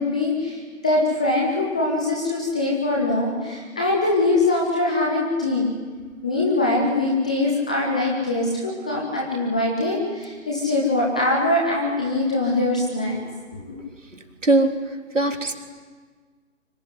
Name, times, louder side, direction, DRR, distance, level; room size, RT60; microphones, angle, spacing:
voice 1, 0.0-5.7 6.2-13.2 13.5-13.8, left 2 dB, 5° left, -2 dB, 0.7 m, -22 dB
voice 2, 14.4-14.7 15.1-15.6, right 2 dB, 65° right, 5 dB, 3.5 m, -19 dB
24.5 x 23.0 x 9.9 m, 1.5 s
figure-of-eight pair, 145°, 40 cm